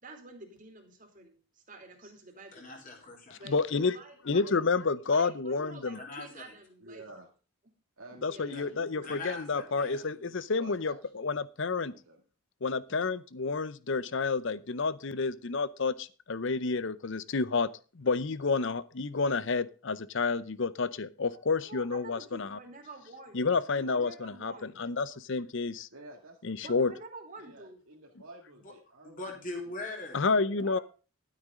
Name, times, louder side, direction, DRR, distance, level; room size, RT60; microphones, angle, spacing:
voice 1, 0.0-2.7 3.4-4.6 5.1-7.0 8.3-9.1 21.3-21.4 21.7-23.5 23.7-24.9 26.6-27.8 30.6-30.8, right 2 dB, 35° right, 4 dB, 2.9 m, -48 dB
voice 2, 2.5-3.4 5.9-6.4 8.5-8.6 9.0-10.0 28.6-28.7 29.0-30.3, left 2 dB, 40° left, 0 dB, 3.5 m, -41 dB
voice 3, 3.4-3.9 4.3-6.0 8.2-11.9 12.6-17.7 17.9-22.6 23.3-24.5 24.8-25.9 26.4-26.9 30.1-30.8, left 4 dB, 60° left, 17 dB, 0.7 m, -30 dB
voice 4, 6.8-7.3 8.0-11.3 11.8-12.2 12.9-13.2 25.9-27.0 27.4-29.7 30.3-30.7, right 2 dB, 70° right, -1 dB, 2.2 m, -52 dB
12.0 x 9.5 x 3.7 m, 0.35 s
head